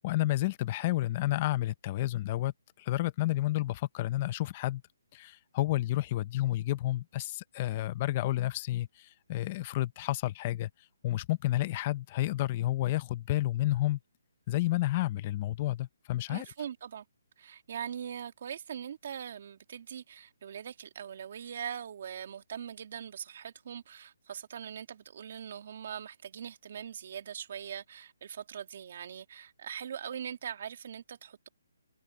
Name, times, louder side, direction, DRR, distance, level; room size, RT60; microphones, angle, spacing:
voice 1, 0.0-2.5 2.8-4.8 5.1-10.7 11.0-14.0 14.5-16.5, left 15 dB, 25° left, 0.8 m, -30 dB
voice 2, 16.3-17.0 17.4-31.5, right 8 dB, 45° right, 2.2 m, -41 dB
hypercardioid pair, 165°, 0 cm